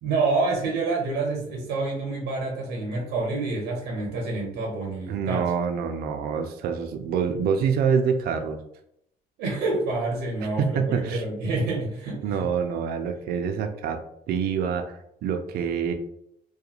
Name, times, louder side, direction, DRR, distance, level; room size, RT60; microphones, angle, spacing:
voice 1, 0.0-5.5 9.4-12.4, right 3 dB, 90° right, -1 dB, 0.7 m, -27 dB
voice 2, 5.1-8.6 10.6-11.2 12.2-14.0 14.3-15.9, right 6 dB, 65° right, 6 dB, 0.4 m, -26 dB
2.4 x 2.2 x 2.8 m, 0.74 s
cardioid pair, 110°, 17 cm